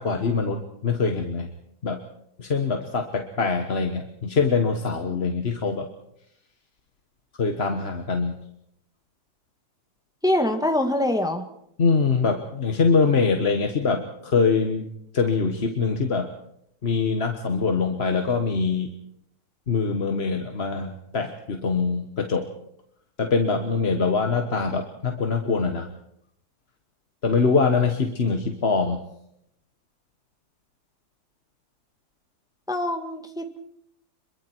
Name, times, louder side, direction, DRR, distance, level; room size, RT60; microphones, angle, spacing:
voice 1, 0.0-1.5 1.8-2.0 2.4-5.9 7.4-8.4 11.8-14.9 15.1-16.3 16.8-18.9 19.7-22.5 23.2-25.9 27.2-29.0, left 4 dB, 35° left, 4 dB, 1.5 m, -23 dB
voice 2, 10.2-11.5 32.7-33.6, left 1 dB, ahead, 5 dB, 1.7 m, -24 dB
26.0 x 23.0 x 4.6 m, 0.75 s
omnidirectional pair, 2.0 m